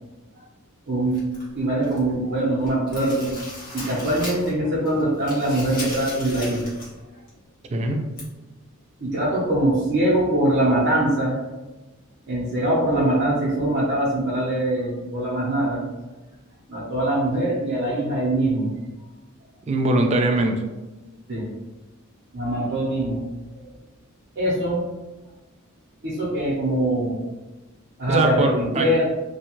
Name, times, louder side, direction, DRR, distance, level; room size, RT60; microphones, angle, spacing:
voice 1, 0.9-1.2 1.5-3.3 3.7-6.7 9.0-11.4 12.3-15.8 16.7-18.7 21.3-21.4 22.3-23.2 23.5-23.6 24.4-24.8 26.0-27.2 28.0-29.0, right 1 dB, 55° right, -7 dB, 0.7 m, -23 dB
sound 1, 1.1-2.1 2.5-4.6 4.9-7.0 7.3-7.4 8.2-8.3, left 1 dB, 45° left, 1.0 m, -37 dB
voice 2, 7.7-8.1 19.7-20.6 28.1-28.9, right 2 dB, 30° right, 4 dB, 0.3 m, -21 dB
2.6 x 2.3 x 2.9 m, 1.1 s
head